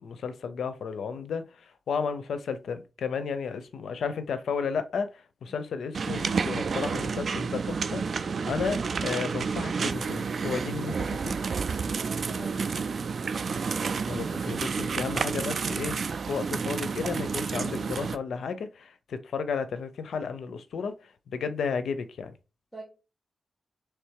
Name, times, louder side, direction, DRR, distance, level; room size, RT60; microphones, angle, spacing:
voice 1, 0.0-11.3 14.1-22.3, left 5 dB, 90° left, 0.5 m, -33 dB
sound 1, 5.9-18.2, right 5 dB, 60° right, 0.4 m, -30 dB
voice 2, 12.0-13.0 22.7-22.8, right 2 dB, ahead, 1.9 m, -44 dB
3.4 x 3.3 x 4.7 m
wide cardioid pair, 100°, 0 cm